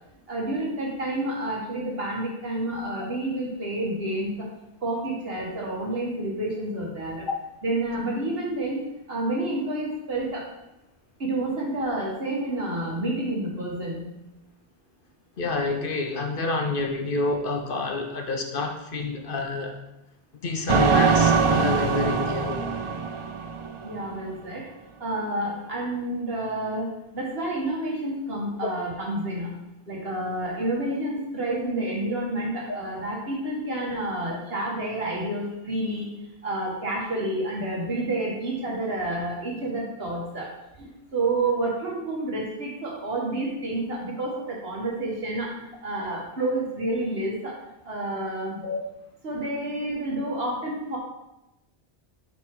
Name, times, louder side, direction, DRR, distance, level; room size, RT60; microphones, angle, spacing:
voice 1, 0.3-4.5 4.8-7.3 7.6-8.8 9.1-10.5 11.2-14.1 23.8-24.6 25.0-26.9 27.1-29.5 29.9-36.2 36.4-40.5 40.8-47.6 47.8-48.6 49.2-51.0, right 1 dB, 65° right, -3 dB, 2.2 m, -29 dB
voice 2, 15.4-19.8 20.4-22.7 48.6-48.8, left 3 dB, 60° left, 4 dB, 0.9 m, -28 dB
sound 1, 20.7-24.1, right 5 dB, 45° right, 0.4 m, -22 dB
6.3 x 6.1 x 3.8 m, 0.91 s
omnidirectional pair, 1.1 m